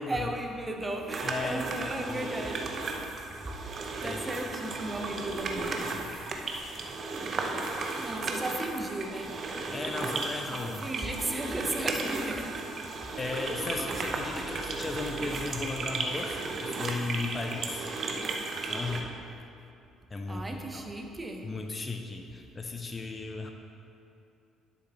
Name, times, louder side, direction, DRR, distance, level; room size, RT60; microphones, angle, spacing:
voice 1, 0.0-3.2 3.6-5.9 8.0-9.4 10.5-12.7 14.4-14.5 20.3-21.5, right 1 dB, 20° right, 3 dB, 0.9 m, -36 dB
sound 1, 1.1-19.0, right 3 dB, 45° right, 0.8 m, -35 dB
voice 2, 1.2-1.7 2.1-2.2 4.0-4.2 5.8-6.1 9.7-10.9 13.2-17.9 18.7-19.1 20.1-20.9 21.4-23.5, left 3 dB, 30° left, 4 dB, 0.6 m, -36 dB
11.0 x 6.5 x 2.9 m, 2.7 s
figure-of-eight pair, 50°, 0 cm